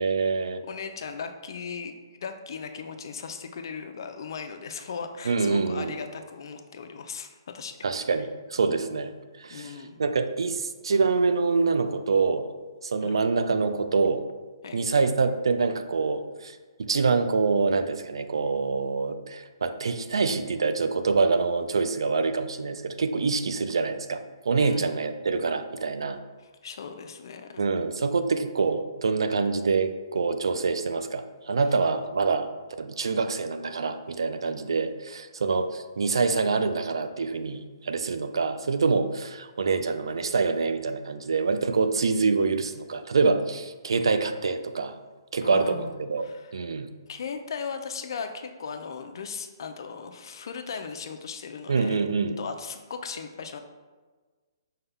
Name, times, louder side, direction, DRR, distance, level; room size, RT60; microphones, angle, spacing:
voice 1, 0.0-0.6 5.2-5.9 7.8-9.1 9.4-12.5 12.8-14.2 14.7-26.2 27.6-32.5 32.8-45.0 45.3-46.3 46.5-46.9 51.7-52.4, right 4 dB, 85° right, 9 dB, 0.3 m, -26 dB
voice 2, 0.7-7.8 9.5-10.0 13.0-13.2 14.6-14.8 24.6-24.9 26.4-27.6 45.4-45.9 46.2-46.5 47.1-52.0 52.4-53.6, left 5 dB, 60° left, 7 dB, 0.4 m, -37 dB
5.4 x 2.2 x 3.4 m, 1.4 s
hypercardioid pair, 155°, 3 cm